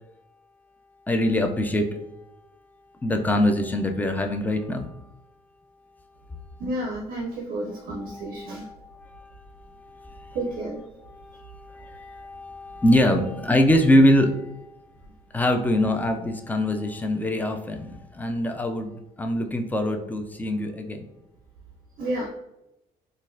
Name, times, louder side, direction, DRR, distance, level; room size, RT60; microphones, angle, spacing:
voice 1, 1.1-1.9 3.0-5.0 8.0-10.4 11.1-14.6 15.3-21.0, left 1 dB, 10° left, 5 dB, 0.3 m, -24 dB
voice 2, 6.6-8.7 10.3-10.9 22.0-22.3, right 1 dB, 55° right, -2 dB, 0.5 m, -31 dB
3.9 x 2.4 x 2.5 m, 0.90 s
cardioid pair, 110°, 17 cm